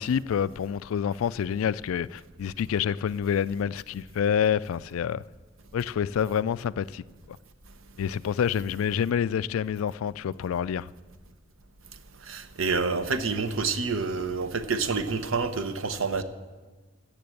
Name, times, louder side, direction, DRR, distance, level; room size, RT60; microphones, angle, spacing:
voice 1, 0.0-5.2 5.7-7.4 8.0-10.9, left 8 dB, 80° left, 0.3 m, -27 dB
voice 2, 12.3-16.2, right 4 dB, 75° right, 0.8 m, -28 dB
14.0 x 7.5 x 7.8 m
head